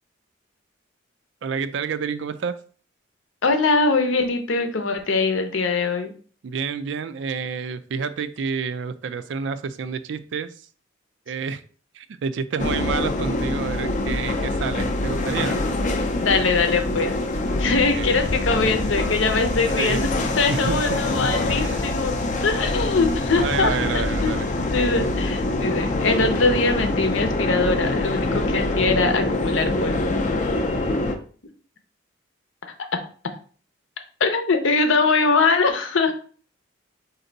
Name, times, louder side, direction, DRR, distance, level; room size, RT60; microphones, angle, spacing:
voice 1, 1.4-2.6 6.4-10.5 11.3-11.6 11.9-15.6 17.7-18.2 19.8-20.0 20.5-21.0 21.6-21.8 23.4-24.5, right 5 dB, 70° right, 13 dB, 0.4 m, -29 dB
voice 2, 3.4-6.1 16.2-17.1 17.6-20.1 20.4-22.2 22.4-24.3 24.7-30.2 34.2-36.1, left 4 dB, 85° left, 6 dB, 0.7 m, -22 dB
sound 1, 12.6-31.2, left 2 dB, 40° left, 0.4 m, -24 dB
4.3 x 2.7 x 3.9 m, 0.43 s
head